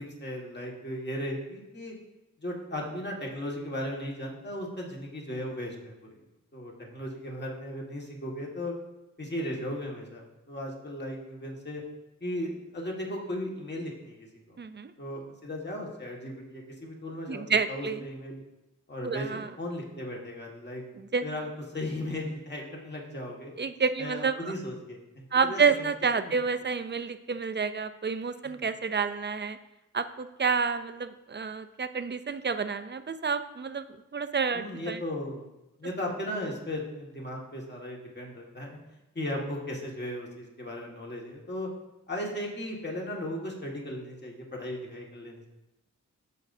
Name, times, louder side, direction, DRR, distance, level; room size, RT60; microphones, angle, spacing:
voice 1, 0.0-1.9 2.4-6.2 6.5-8.7 9.2-11.8 12.2-14.6 15.0-18.4 18.9-20.8 21.2-21.5 21.7-23.5 24.0-25.9 26.2-26.3 28.4-28.6 34.5-35.5 35.8-38.8 39.1-41.7 42.1-45.5, left 1 dB, 35° left, -1 dB, 1.7 m, -36 dB
voice 2, 14.6-14.9 17.3-18.0 19.0-19.5 21.0-21.2 23.6-24.5 25.3-29.6 29.9-35.0, right 5 dB, 35° right, 11 dB, 0.4 m, -29 dB
14.0 x 5.3 x 2.7 m, 0.98 s
wide cardioid pair, 100°, 32 cm